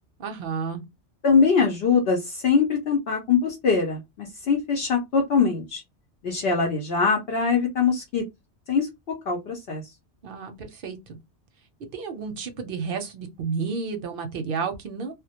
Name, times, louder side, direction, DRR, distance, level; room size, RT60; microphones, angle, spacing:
voice 1, 0.2-0.8 10.2-11.2 11.9-15.1, right 5 dB, 60° right, 0.7 m, -31 dB
voice 2, 1.2-5.8 6.2-8.3 8.7-8.9 9.3-9.8, left 5 dB, 65° left, 0.8 m, -22 dB
2.1 x 2.1 x 2.8 m
omnidirectional pair, 1.2 m